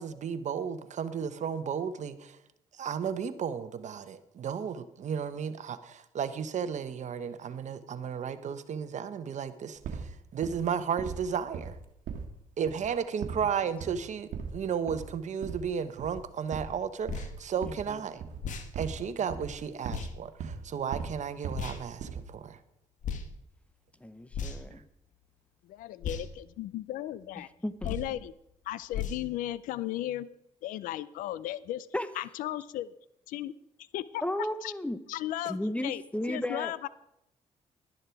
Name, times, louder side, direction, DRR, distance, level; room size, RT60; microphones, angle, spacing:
voice 1, 0.0-2.4 2.7-11.8 12.6-18.2 18.7-22.6 24.7-24.8, right 7 dB, 60° right, 12 dB, 1.1 m, -34 dB
sound 1, 9.8-10.1 10.4-10.7 11.0-11.3 11.5-12.4 12.7-13.0 13.2-13.5 13.8-14.0 14.3-14.6 14.9-15.2 15.4-15.7 16.0-16.2 16.5-17.9 18.2-19.0 19.3-20.1 20.4-20.6 20.9-21.7 22.0-22.4, right 6 dB, 75° right, 1.5 m, -39 dB
sound 2, 17.0-17.3 18.4-18.7 19.9-20.1 21.5-21.8 23.0-23.3 24.3-24.7 26.0-26.3 27.8-28.1 28.9-29.2, left 6 dB, 70° left, 1.7 m, -35 dB
voice 2, 17.7-18.0 24.0-24.9 27.4-28.2 31.9-32.1 34.2-35.0 35.5-36.7, left 1 dB, 10° left, 13 dB, 0.9 m, -34 dB
voice 3, 25.8-27.5 27.9-28.3 28.7-30.3 30.6-31.9 32.2-32.9 33.3-33.5 33.9-34.2 34.6-34.7 35.1-35.6 35.8-36.0 36.3-36.9, left 14 dB, 90° left, 18 dB, 0.5 m, -35 dB
12.0 x 11.0 x 4.6 m, 0.80 s
cardioid pair, 70°, 14 cm